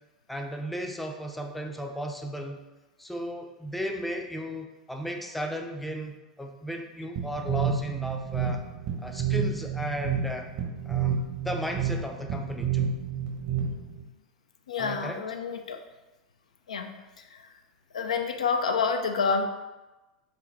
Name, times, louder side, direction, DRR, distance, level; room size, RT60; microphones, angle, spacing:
voice 1, 0.3-2.6 3.0-8.6 9.0-10.5 10.9-12.9 14.8-15.2, equal, 5° left, 3 dB, 0.4 m, -35 dB
sound 1, 7.2-14.0, right 7 dB, 55° right, 0.9 m, -30 dB
voice 2, 14.7-15.8 16.7-16.9 17.2-17.4 17.9-19.4, left 5 dB, 80° left, 5 dB, 0.3 m, -28 dB
3.9 x 2.1 x 3.9 m, 1.1 s
hypercardioid pair, 90°, 4 cm